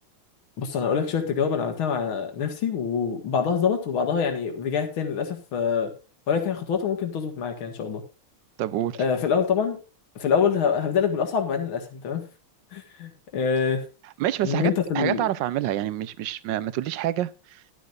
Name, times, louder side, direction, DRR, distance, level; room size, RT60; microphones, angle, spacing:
voice 1, 0.6-5.9 6.3-8.0 9.0-9.8 10.2-12.2 12.7-13.8 14.4-15.2, left 6 dB, 80° left, 2.5 m, -25 dB
voice 2, 8.6-9.0 14.2-17.6, right 12 dB, 70° right, 1.4 m, -27 dB
14.0 x 11.5 x 2.6 m
omnidirectional pair, 2.2 m